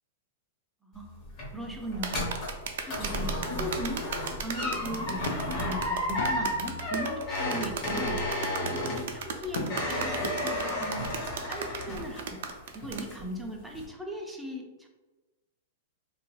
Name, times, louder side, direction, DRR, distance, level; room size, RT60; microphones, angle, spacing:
voice 1, 0.8-2.4 2.9-4.1 4.4-8.2 8.6-11.1 11.5-12.4 12.7-14.9, equal, ahead, 0 dB, 0.4 m, -38 dB
sound 1, 0.9-12.5 12.8-13.3 13.7-13.8, left 1 dB, 35° left, 1.0 m, -33 dB
sound 2, 2.0-13.1, right 6 dB, 70° right, 0.4 m, -36 dB
sound 3, 4.8-10.7, left 2 dB, 90° left, 0.5 m, -43 dB
2.8 x 2.3 x 3.1 m, 1.2 s
supercardioid pair, 145°, 0 cm